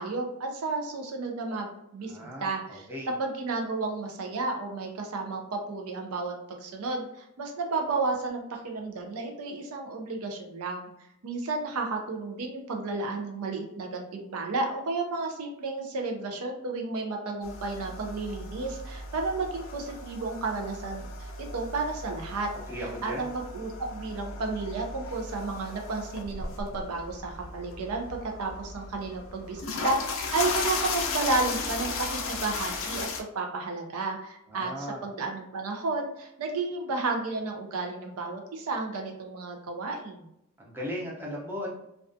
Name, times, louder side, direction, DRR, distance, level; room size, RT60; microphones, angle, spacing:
voice 1, 0.0-2.9 3.2-10.9 11.2-30.0 30.3-40.3, right 3 dB, 70° right, 3 dB, 0.4 m, -32 dB
voice 2, 2.1-3.1 22.7-23.3 34.5-35.0 40.6-41.7, equal, 10° right, -4 dB, 0.5 m, -37 dB
sound 1, 17.4-33.2, left 3 dB, 60° left, 0.4 m, -36 dB
2.3 x 2.3 x 2.5 m, 0.81 s
head